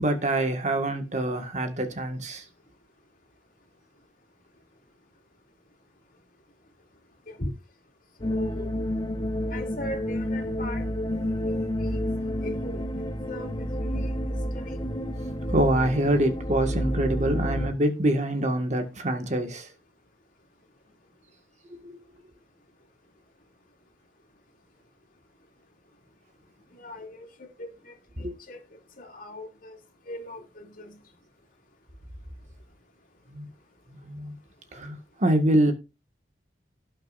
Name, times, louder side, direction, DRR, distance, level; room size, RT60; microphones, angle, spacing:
voice 1, 0.0-2.4 15.5-19.7 21.7-22.0 28.2-28.4 33.3-33.5 33.9-34.3 34.7-35.7, right 1 dB, 45° right, 1.9 m, -25 dB
voice 2, 8.2-8.7 9.5-12.1 12.4-12.8 13.3-14.9 26.7-27.3 27.6-28.6 29.0-29.8 30.0-31.0, left 1 dB, 50° left, 3.0 m, -40 dB
sound 1, 8.2-17.7, equal, 25° left, 1.2 m, -30 dB
18.0 x 6.6 x 2.6 m
head